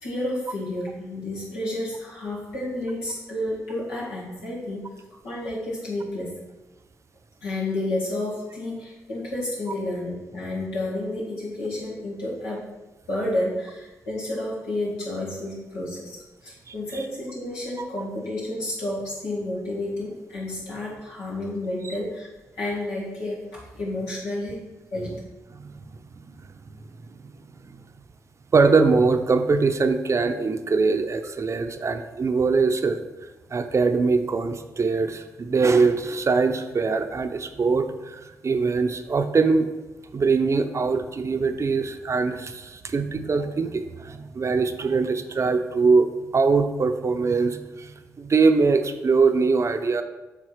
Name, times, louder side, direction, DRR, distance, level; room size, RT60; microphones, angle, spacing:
voice 1, 0.0-4.9 5.2-6.3 7.4-12.6 13.1-22.3 22.6-24.6 24.9-25.1, left 1 dB, 90° left, -7 dB, 2.1 m, -30 dB
voice 2, 16.7-17.0 17.8-17.9 21.8-21.9 25.5-25.6 27.7-27.8 28.5-33.0 33.5-39.7 40.1-47.9 48.2-50.0, right 4 dB, 45° right, 8 dB, 0.6 m, -22 dB
7.3 x 3.6 x 4.6 m, 1.1 s
hypercardioid pair, 40°, 7 cm